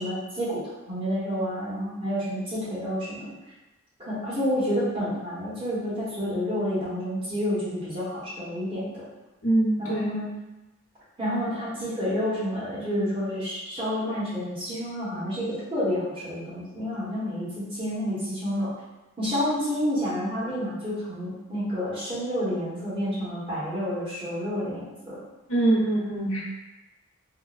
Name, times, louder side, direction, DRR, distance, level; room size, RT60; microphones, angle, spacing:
voice 1, 0.0-3.3 4.0-9.0 9.8-10.4 11.2-18.7 19.2-25.2, equal, 25° right, -10 dB, 1.1 m, -29 dB
voice 2, 9.4-10.1 25.5-26.4, right 2 dB, 75° left, -7 dB, 1.0 m, -23 dB
3.8 x 2.2 x 2.4 m, 1.0 s
head